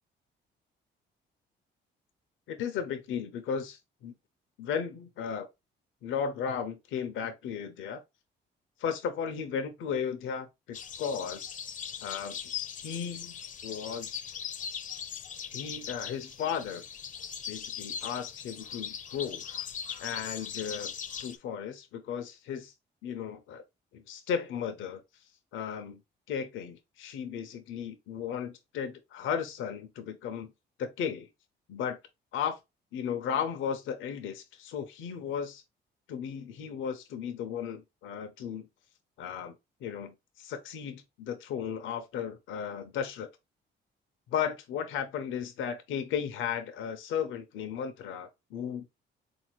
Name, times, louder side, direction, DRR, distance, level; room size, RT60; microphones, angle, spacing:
voice 1, 2.5-4.1 4.6-5.5 6.0-8.0 8.8-11.6 12.0-12.4 12.7-14.2 15.5-16.8 17.5-19.4 20.0-20.9 21.2-22.7 23.0-23.6 23.9-25.0 25.5-26.0 26.3-30.5 30.8-31.3 31.7-32.0 32.3-32.6 32.9-35.6 36.1-38.7 39.2-39.5 39.8-43.3 44.3-48.9, left 7 dB, 85° left, 0.6 m, -35 dB
sound 1, 10.7-21.4, left 8 dB, 40° left, 0.4 m, -40 dB
3.8 x 2.6 x 3.0 m
cardioid pair, 90°, 20 cm